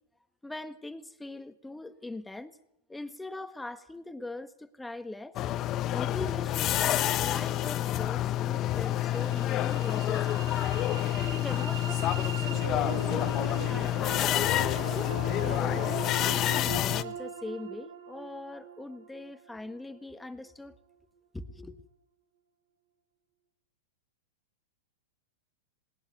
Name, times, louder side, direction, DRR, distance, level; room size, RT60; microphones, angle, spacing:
voice 1, 0.4-2.6 2.9-5.4 5.9-10.7 11.3-14.5 14.9-15.1 15.4-20.7 21.3-21.8, left 2 dB, 5° left, 1.5 m, -41 dB
sound 1, 5.4-17.0, left 13 dB, 35° left, 1.2 m, -28 dB
sound 2, 8.7-20.7, right 5 dB, 85° right, 2.9 m, -41 dB
20.5 x 18.0 x 9.4 m
hypercardioid pair, 130°, 0 cm